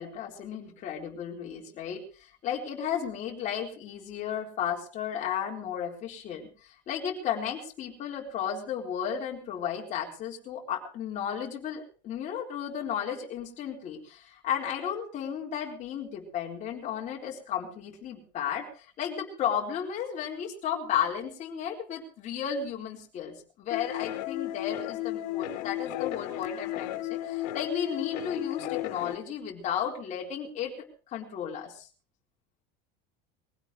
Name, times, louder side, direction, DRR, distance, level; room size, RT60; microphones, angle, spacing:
voice 1, 0.0-30.7 31.1-31.9, left 8 dB, 35° left, -1 dB, 4.1 m, -34 dB
sound 1, 23.7-29.1, left 15 dB, 80° left, 2.2 m, -34 dB
22.0 x 16.5 x 3.2 m, 0.38 s
cardioid pair, 160°, 21 cm